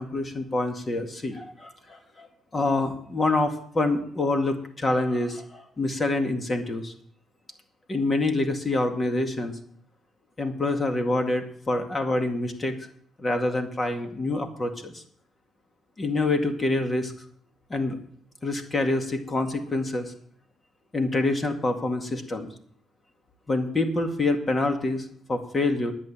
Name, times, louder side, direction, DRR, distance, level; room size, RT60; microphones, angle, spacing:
voice 1, 0.0-6.9 7.9-9.6 10.4-12.8 13.2-15.0 16.0-17.1 17.7-18.0 18.4-20.1 20.9-22.5 23.5-25.9, left 2 dB, 30° left, 5 dB, 2.1 m, -26 dB
10.5 x 8.6 x 7.4 m, 0.63 s
cardioid pair, 90°, 0 cm